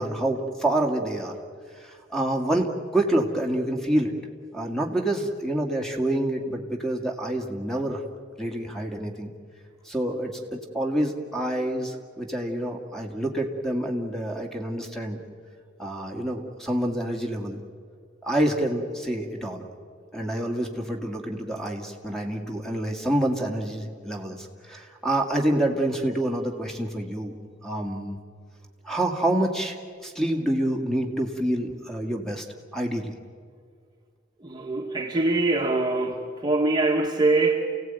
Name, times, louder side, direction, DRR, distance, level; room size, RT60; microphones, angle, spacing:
voice 1, 0.0-1.4 1.8-2.7 2.9-4.1 4.5-8.0 8.4-9.3 9.9-15.2 15.8-17.6 18.2-19.6 20.1-27.3 27.6-28.2 28.8-29.8 30.0-32.5 32.7-33.1, right 1 dB, ahead, 2 dB, 2.2 m, -27 dB
voice 2, 34.4-37.6, right 2 dB, 20° right, 1 dB, 1.6 m, -23 dB
29.5 x 17.0 x 9.2 m, 2.1 s
head